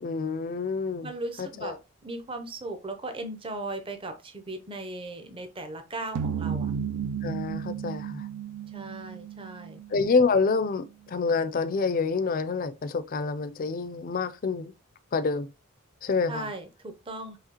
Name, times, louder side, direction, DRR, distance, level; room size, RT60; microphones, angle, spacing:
voice 1, 0.0-1.1 1.4-1.7 7.2-8.3 9.9-14.7 15.1-15.5 16.0-16.5, left 4 dB, 40° left, 0.4 m, -27 dB
voice 2, 1.0-6.7 8.7-9.8 16.3-17.4, right 2 dB, 25° right, 0.6 m, -37 dB
sound 1, 6.2-10.5, right 7 dB, 80° right, 0.3 m, -33 dB
4.8 x 3.1 x 2.9 m
head